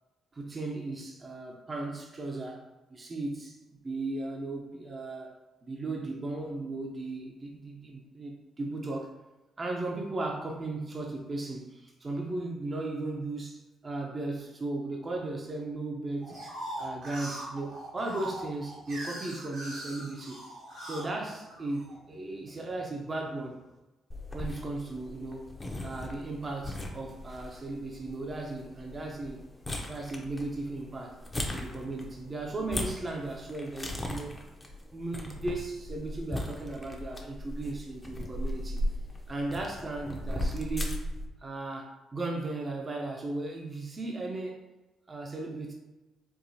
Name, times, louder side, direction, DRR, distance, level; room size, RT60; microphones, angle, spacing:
voice 1, 0.3-2.6 2.9-3.6 3.8-5.3 5.6-9.2 9.6-16.3 16.8-20.4 20.8-23.6 24.3-25.5 25.8-29.4 29.8-31.2 31.5-34.3 34.9-38.8 39.3-41.0 41.4-44.6 45.1-45.7, right 2 dB, 30° right, 0 dB, 0.6 m, -36 dB
sound 1, 16.2-22.0 22.5-23.2, right 1 dB, 80° right, 1.4 m, -41 dB
sound 2, 24.1-41.3, left 1 dB, 20° left, 0.6 m, -38 dB
4.5 x 2.4 x 2.7 m, 1.0 s
cardioid pair, 90°, 0 cm